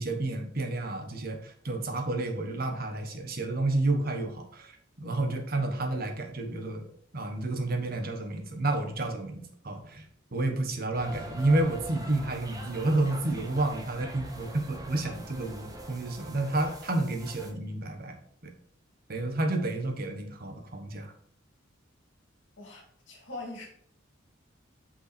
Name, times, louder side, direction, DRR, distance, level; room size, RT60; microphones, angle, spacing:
voice 1, 0.0-6.9 7.1-18.2 18.4-18.5 19.1-21.1, right 2 dB, 50° right, 4 dB, 1.2 m, -30 dB
sound 1, 10.9-17.5, right 1 dB, 20° right, 1.0 m, -44 dB
voice 2, 22.6-23.7, left 2 dB, 65° left, -2 dB, 2.5 m, -42 dB
5.6 x 5.5 x 4.3 m, 0.64 s
head